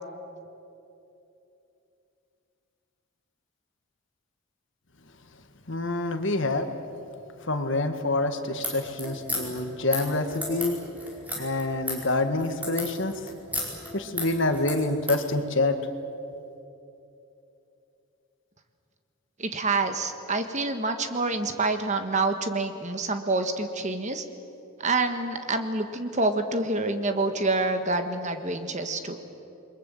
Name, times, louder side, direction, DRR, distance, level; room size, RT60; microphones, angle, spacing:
voice 1, 5.7-6.7 7.4-10.8 11.3-13.1 13.9-15.8, left 2 dB, 55° left, 7 dB, 1.6 m, -27 dB
sound 1, 8.6-15.2, equal, 5° right, 4.8 m, -34 dB
voice 2, 19.4-24.2 24.8-29.2, right 3 dB, 30° right, 8 dB, 1.4 m, -27 dB
28.5 x 22.5 x 7.7 m, 2.9 s
head